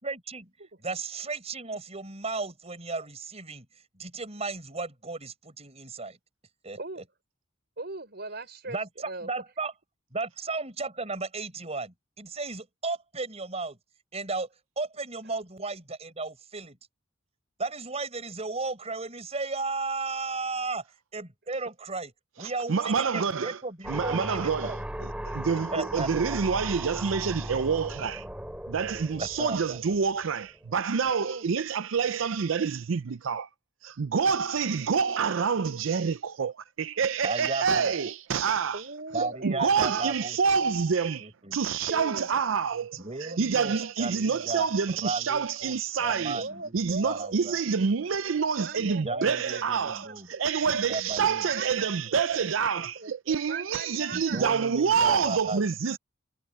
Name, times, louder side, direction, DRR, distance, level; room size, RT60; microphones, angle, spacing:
voice 1, 0.0-0.5 0.8-3.7 3.9-6.2 6.6-6.8 8.7-9.7 10.1-13.8 14.1-14.5 14.8-16.8 17.6-20.8 21.1-22.1 22.4-24.8 25.7-26.9 29.2-29.8 37.2-37.9 39.1-40.4 41.2-41.6 43.0-47.6 48.8-50.3 50.7-51.5 54.1-55.7, right 3 dB, 35° right, 4.7 m, -35 dB
voice 2, 7.8-9.3 31.2-31.4 38.7-40.1 41.9-42.6 42.9-44.7 46.3-50.4 51.2-54.4, right 3 dB, 55° right, 5.1 m, -41 dB
voice 3, 22.4-23.6 23.9-28.3 28.7-33.5 33.8-38.9 39.1-46.5 46.7-56.0, right 6 dB, 85° right, 0.5 m, -27 dB
sound 1, 23.8-30.3, right 1 dB, 5° right, 3.8 m, -37 dB
head